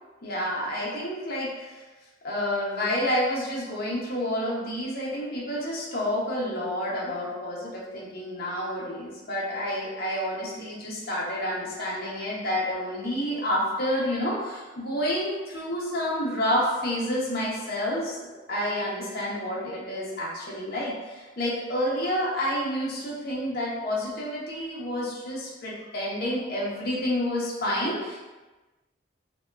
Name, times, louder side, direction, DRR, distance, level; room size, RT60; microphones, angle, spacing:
voice 1, 0.2-1.8 2.2-28.2, equal, 55° left, -5 dB, 0.6 m, -29 dB
2.7 x 2.2 x 2.3 m, 1.2 s
head